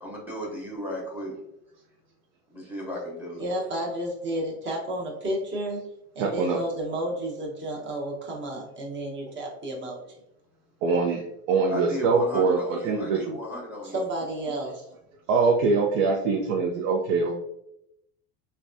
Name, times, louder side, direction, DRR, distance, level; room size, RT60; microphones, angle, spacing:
voice 1, 0.0-1.4 2.5-3.4 11.7-14.0, equal, 5° right, -2 dB, 0.8 m, -35 dB
voice 2, 3.4-5.8 6.1-10.0 13.9-14.8, right 1 dB, 30° right, -1 dB, 0.9 m, -31 dB
voice 3, 6.2-6.6 10.8-13.4 15.3-17.4, right 4 dB, 85° right, 0 dB, 0.6 m, -23 dB
3.4 x 2.2 x 2.5 m, 0.81 s
cardioid pair, 130°, 39 cm